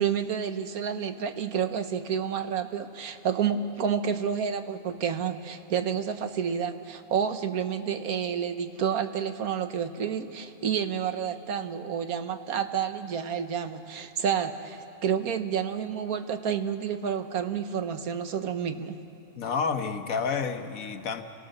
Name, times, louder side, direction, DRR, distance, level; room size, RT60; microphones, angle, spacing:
voice 1, 0.0-19.0, right 7 dB, 80° right, 8 dB, 1.5 m, -29 dB
voice 2, 19.4-21.2, left 5 dB, 70° left, 7 dB, 1.5 m, -29 dB
29.5 x 18.5 x 6.5 m, 2.7 s
omnidirectional pair, 1.5 m